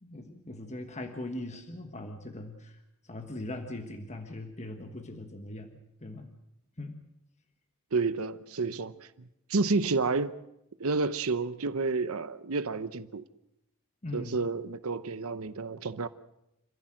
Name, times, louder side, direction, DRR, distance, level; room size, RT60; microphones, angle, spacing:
voice 1, 0.0-2.8 3.0-6.3 6.8-7.0 14.0-14.4, left 1 dB, 30° left, 1.5 m, -40 dB
voice 2, 7.9-8.9 9.5-10.3 10.8-13.2 14.1-16.1, right 3 dB, 70° right, 0.8 m, -30 dB
27.5 x 15.0 x 7.7 m
head